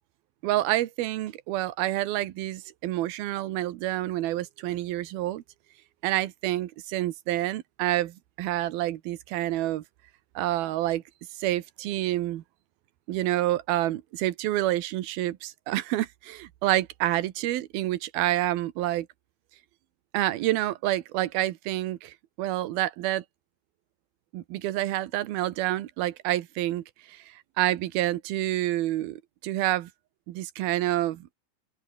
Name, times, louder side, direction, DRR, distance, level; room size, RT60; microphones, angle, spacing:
voice 1, 0.4-5.4 6.0-9.8 10.4-11.0 11.4-12.4 13.1-19.1 20.1-23.2 24.3-27.2 27.6-29.9 30.3-31.3, right 15 dB, 80° right, 3.1 m, -28 dB
open air
omnidirectional pair, 4.4 m